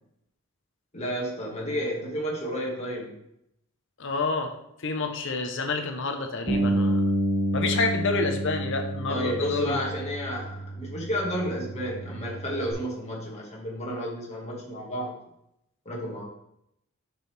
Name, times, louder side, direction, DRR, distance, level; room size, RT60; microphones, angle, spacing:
voice 1, 0.9-3.2 9.1-15.2 15.9-16.2, equal, 30° left, -3 dB, 2.0 m, -31 dB
voice 2, 4.0-4.5 4.8-7.0 7.5-9.8, left 3 dB, 65° left, 5 dB, 0.9 m, -28 dB
Bass guitar, 6.5-12.7, right 1 dB, 30° right, 1.8 m, -29 dB
6.7 x 6.3 x 3.5 m, 0.78 s
head